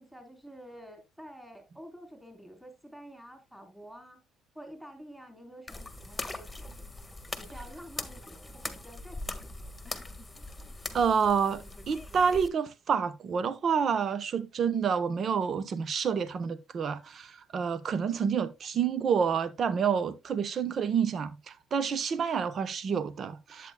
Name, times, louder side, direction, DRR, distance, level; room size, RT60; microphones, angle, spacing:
voice 1, 0.0-4.2 4.5-6.7 7.4-9.7, equal, 5° right, 3.9 m, -49 dB
sound 1, 5.7-12.5, left 2 dB, 15° left, 1.5 m, -41 dB
voice 2, 10.9-23.7, right 6 dB, 50° right, 1.0 m, -28 dB
10.5 x 8.5 x 2.2 m
supercardioid pair, 85°, 0 cm